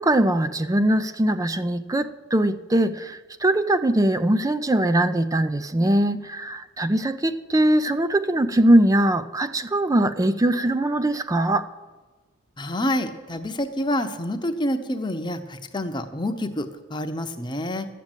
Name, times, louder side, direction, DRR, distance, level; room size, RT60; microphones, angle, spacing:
voice 1, 0.0-11.7, right 1 dB, 15° right, 0.4 m, -21 dB
voice 2, 12.6-17.9, left 1 dB, 20° left, 0.8 m, -28 dB
13.0 x 7.5 x 9.0 m
head